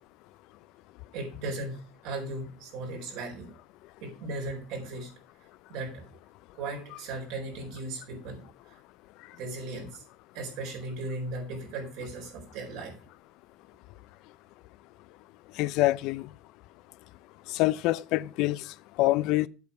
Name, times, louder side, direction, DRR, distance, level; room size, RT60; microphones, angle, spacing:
voice 1, 1.1-3.5 4.0-5.1 5.7-6.0 6.5-8.8 9.3-10.0 10.3-12.9, right 2 dB, 70° right, 4.3 m, -37 dB
voice 2, 15.6-16.3 17.5-19.5, left 17 dB, 65° left, 0.4 m, -26 dB
8.3 x 6.9 x 5.3 m
cardioid pair, 140°, 0 cm